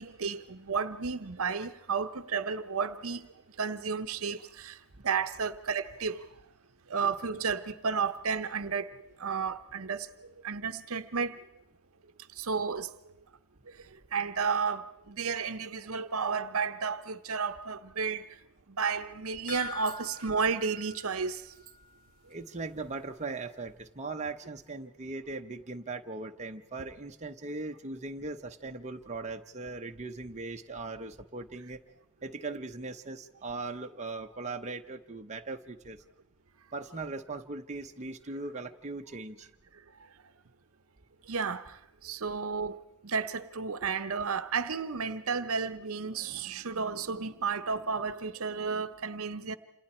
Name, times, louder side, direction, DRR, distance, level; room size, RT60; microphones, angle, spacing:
voice 1, 0.0-3.3 3.6-4.8 5.0-6.3 6.9-8.9 9.2-10.1 10.4-11.4 12.4-12.9 14.1-18.3 18.7-21.4 41.3-41.8 42.0-42.8 43.0-49.6, right 5 dB, 65° right, 0.8 m, -32 dB
sound 1, 19.5-22.0 22.3-22.4 22.8-22.9, left 4 dB, 90° left, 4.7 m, -45 dB
voice 2, 22.3-31.8 32.2-36.0 36.7-39.5, right 3 dB, 30° right, 0.9 m, -39 dB
28.0 x 27.5 x 4.4 m
head